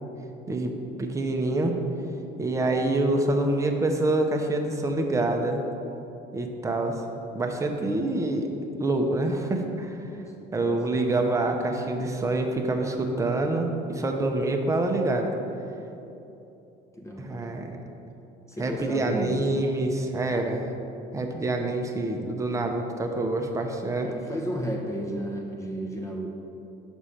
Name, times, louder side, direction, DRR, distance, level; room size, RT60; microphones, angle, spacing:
voice 1, 0.5-1.7 2.4-5.6 6.3-7.0 7.3-8.5 8.8-10.0 10.5-15.3 17.2-17.8 18.6-20.7 21.1-24.1, right 2 dB, 15° right, 3 dB, 0.7 m, -26 dB
voice 2, 16.9-17.5 18.5-19.6 24.0-26.3, equal, 15° left, 0 dB, 0.8 m, -33 dB
6.1 x 4.9 x 5.6 m, 2.9 s
cardioid pair, 110°, 19 cm